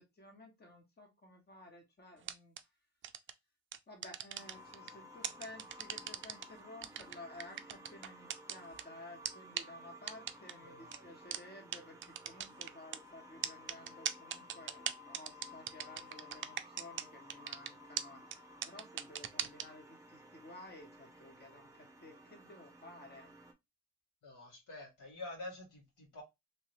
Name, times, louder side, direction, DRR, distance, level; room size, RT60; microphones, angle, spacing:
voice 1, 0.0-2.5 3.9-23.3, left 2 dB, 35° left, 1.4 m, -54 dB
sound 1, 2.2-2.6 3.0-3.3 3.7-4.9 5.2-6.4 6.8-8.8 9.2-9.3 9.6-9.7 10.1-10.5 10.9-11.0 11.3-11.4 11.7-11.8 12.0-13.0 13.4-17.0 17.3-17.7 18.0-18.1 18.3-18.4 18.6-19.6, right 9 dB, 40° right, 0.4 m, -38 dB
sound 2, 4.4-23.5, left 1 dB, 10° right, 0.7 m, -56 dB
voice 2, 10.6-11.0 24.2-26.2, left 2 dB, 80° left, 1.8 m, -48 dB
3.1 x 2.6 x 3.1 m
cardioid pair, 90°, 30 cm